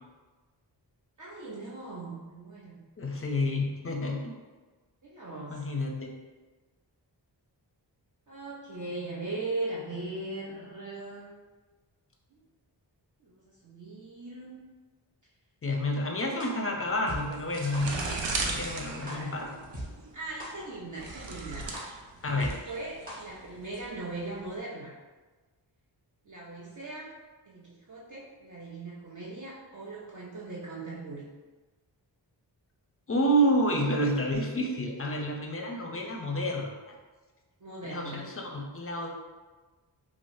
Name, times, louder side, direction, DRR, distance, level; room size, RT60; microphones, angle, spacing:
voice 1, 1.2-2.8 5.0-5.6 8.3-11.4 12.3-12.4 13.2-13.3 13.6-14.6 19.0-19.4 20.1-21.7 22.3-24.9 26.3-27.1 27.5-31.3 35.9-36.0 37.6-38.3, right 2 dB, 45° right, -6 dB, 0.6 m, -39 dB
voice 2, 3.0-4.3 5.5-6.1 15.6-19.5 22.2-22.5 33.1-36.9 37.8-39.1, equal, 30° left, 1 dB, 0.5 m, -29 dB
sound 1, 16.4-16.5 17.1-17.2 17.7-17.8 18.4-18.5 19.1-19.2 19.7-19.8 20.4-20.5 21.1-21.2 21.7-21.8 22.4-22.5 23.1-23.2 23.7-23.8, right 1 dB, 20° right, 1.0 m, -38 dB
sound 2, 16.8-24.5, right 3 dB, 80° right, 0.6 m, -37 dB
4.7 x 2.0 x 2.6 m, 1.3 s
wide cardioid pair, 75°, 44 cm